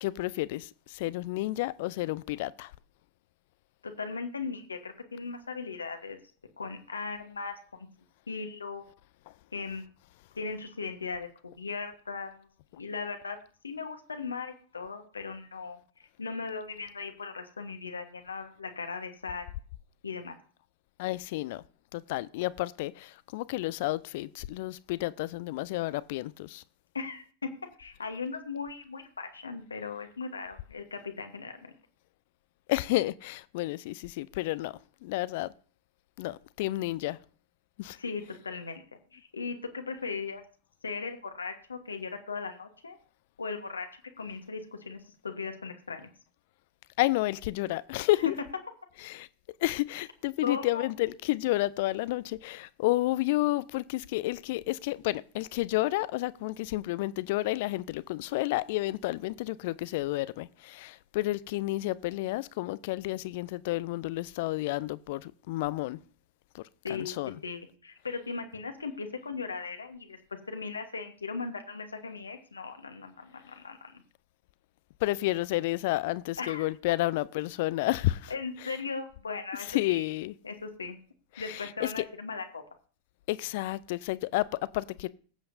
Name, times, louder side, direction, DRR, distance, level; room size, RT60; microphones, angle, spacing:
voice 1, 0.0-2.7 21.0-21.6 21.9-26.6 32.7-34.7 35.0-35.5 36.2-37.2 37.8-38.0 47.0-48.3 49.0-49.3 49.6-66.0 66.5-66.6 66.9-67.4 75.0-78.3 79.7-80.3 81.4-82.0 83.3-85.1, left 18 dB, 50° left, 0.4 m, -31 dB
voice 2, 3.8-6.2 6.6-7.9 8.3-8.9 9.5-9.8 10.3-12.5 12.7-13.4 13.6-15.8 16.2-19.5 20.0-20.4 26.9-31.7 38.0-38.8 39.1-40.4 40.8-43.0 43.4-46.1 48.2-48.3 50.4-50.9 66.8-67.2 67.4-70.2 70.5-74.0 76.4-76.7 78.3-80.0 80.4-81.0 81.4-82.6, left 4 dB, 75° left, 1.2 m, -38 dB
21.0 x 7.7 x 2.7 m
figure-of-eight pair, 90°, 0 cm